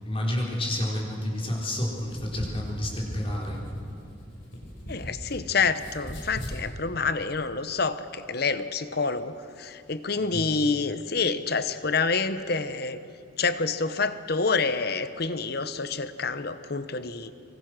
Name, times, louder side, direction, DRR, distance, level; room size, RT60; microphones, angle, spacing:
voice 1, 0.0-3.6 10.3-10.5, left 1 dB, 30° left, -2 dB, 4.1 m, -30 dB
sound 1, 2.0-5.4 5.7-6.6, equal, 80° left, 5.4 m, -38 dB
voice 2, 4.9-13.0 13.4-17.3, left 4 dB, 50° left, 12 dB, 0.9 m, -28 dB
24.5 x 24.0 x 6.2 m, 2.6 s
head